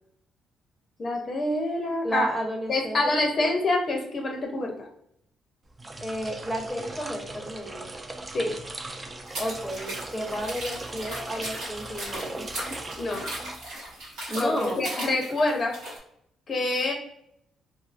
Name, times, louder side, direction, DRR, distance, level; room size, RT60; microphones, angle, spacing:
voice 1, 1.0-2.3 2.7-4.9 8.3-8.5 13.0-13.3 14.3-15.8 16.5-16.9, left 2 dB, 45° left, 2 dB, 0.5 m, -26 dB
voice 2, 2.0-3.0 3.4-3.5 6.0-7.9 9.4-12.6 14.3-14.8, right 1 dB, ahead, 0 dB, 0.8 m, -32 dB
sound 1, 5.7-14.1, right 2 dB, 25° right, 0.3 m, -39 dB
sound 2, 9.3-16.0, right 1 dB, 85° right, 1.2 m, -37 dB
2.5 x 2.4 x 2.4 m, 0.74 s
cardioid pair, 85°, 0 cm